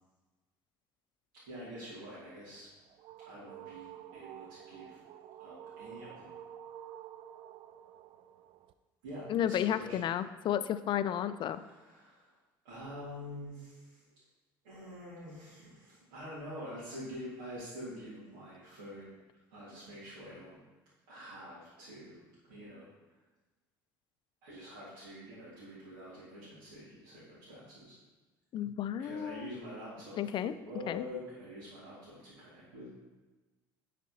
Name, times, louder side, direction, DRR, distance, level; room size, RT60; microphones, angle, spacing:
voice 1, 1.5-2.7 3.3-5.0 5.4-6.4 9.0-10.1 11.5-12.4 12.6-14.0 14.6-19.2 19.5-20.6 21.1-22.2 22.5-22.9 24.4-27.9 29.0-32.9, equal, 80° right, -11 dB, 2.1 m, -46 dB
sound 1, 2.6-8.7, right 10 dB, 55° right, 0.4 m, -50 dB
voice 2, 9.3-11.6 28.5-29.5 30.2-30.5 30.9-31.0, left 10 dB, 45° left, 13 dB, 0.4 m, -32 dB
10.5 x 4.1 x 2.8 m, 1.2 s
hypercardioid pair, 70°, 11 cm